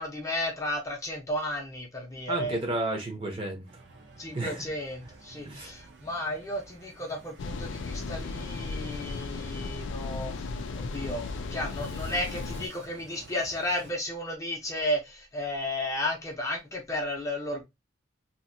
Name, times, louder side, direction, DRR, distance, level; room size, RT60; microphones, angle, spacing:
voice 1, 0.0-2.6 4.2-10.5 10.7-17.6, left 1 dB, 15° left, 0.7 m, -33 dB
voice 2, 2.3-3.8 4.3-4.6 5.4-5.7, right 2 dB, 25° right, 0.7 m, -32 dB
sound 1, 3.7-13.9, right 3 dB, 60° right, 0.7 m, -52 dB
sound 2, 7.4-12.7, left 3 dB, 70° left, 0.4 m, -35 dB
2.8 x 2.6 x 2.6 m
head